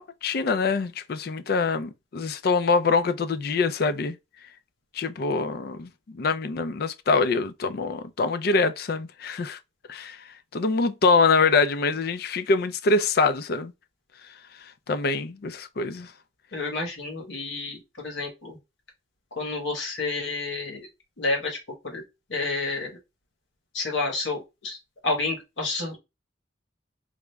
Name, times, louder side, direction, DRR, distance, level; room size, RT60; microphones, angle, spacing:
voice 1, 0.0-4.2 5.0-9.6 9.9-10.2 10.5-13.7 14.9-16.1, left 4 dB, 55° left, 0.4 m, -24 dB
voice 2, 16.5-18.6 19.4-20.9 21.2-21.6 21.8-22.0 22.3-23.0 23.7-24.8 25.0-26.0, left 3 dB, 80° left, 1.4 m, -30 dB
4.9 x 2.1 x 3.4 m
head